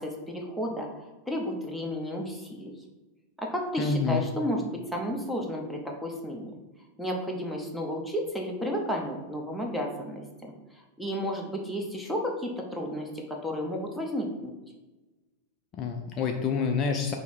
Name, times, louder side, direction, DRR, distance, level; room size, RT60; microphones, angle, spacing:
voice 1, 0.0-2.7 3.4-6.5 7.0-10.5 11.0-14.5, equal, ahead, -1 dB, 0.8 m, -32 dB
voice 2, 3.8-4.3 15.8-17.1, left 5 dB, 30° left, 3 dB, 0.4 m, -27 dB
5.3 x 2.1 x 4.6 m, 1.1 s
figure-of-eight pair, 90°, 0 cm